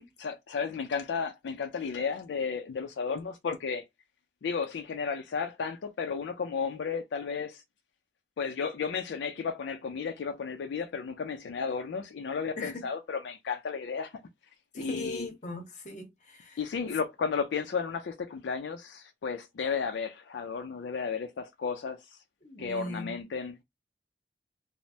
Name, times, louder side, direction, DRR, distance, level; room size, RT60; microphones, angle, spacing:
voice 1, 0.2-3.8 4.4-7.6 8.4-14.1 14.7-15.3 16.6-22.0 22.6-23.6, left 5 dB, 85° left, 0.4 m, -33 dB
voice 2, 12.6-12.9 14.7-16.6 22.4-23.2, left 2 dB, 45° left, 0.8 m, -39 dB
3.1 x 2.0 x 2.6 m
head